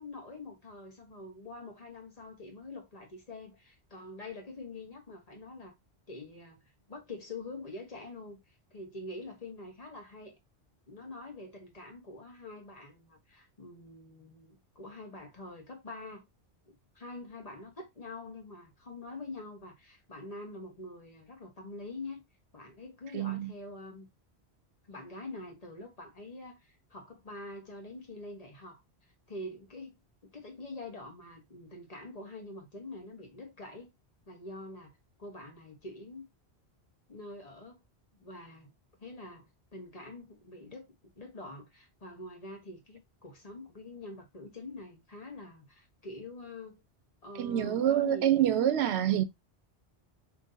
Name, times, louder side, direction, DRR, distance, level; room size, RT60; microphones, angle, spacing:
voice 1, 0.0-5.7 6.1-6.6 6.9-8.4 8.7-10.4 10.9-16.2 16.7-22.2 22.5-24.1 24.9-28.8 29.3-30.0 30.2-33.9 34.3-36.2 37.1-37.8 38.2-38.7 39.0-40.9 41.2-46.8 47.2-48.7, left 2 dB, 40° left, 1.2 m, -45 dB
voice 2, 23.1-23.5 47.4-49.2, right 11 dB, 85° right, 0.9 m, -26 dB
2.9 x 2.6 x 3.7 m
omnidirectional pair, 1.1 m